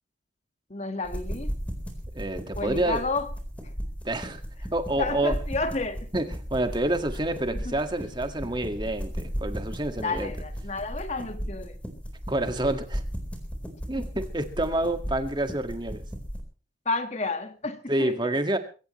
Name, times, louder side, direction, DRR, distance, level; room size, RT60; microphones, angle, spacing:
voice 1, 0.7-1.5 2.6-3.3 5.0-6.1 7.4-7.8 10.0-11.8 14.0-14.1 16.8-18.2, left 3 dB, 35° left, 1.7 m, -31 dB
sound 1, 1.0-16.4, equal, 5° left, 4.1 m, -36 dB
voice 2, 2.1-3.0 4.0-4.4 4.7-5.3 6.1-10.3 12.3-13.0 13.9-16.0 17.9-18.6, right 1 dB, 25° right, 1.9 m, -28 dB
23.0 x 17.0 x 3.2 m
head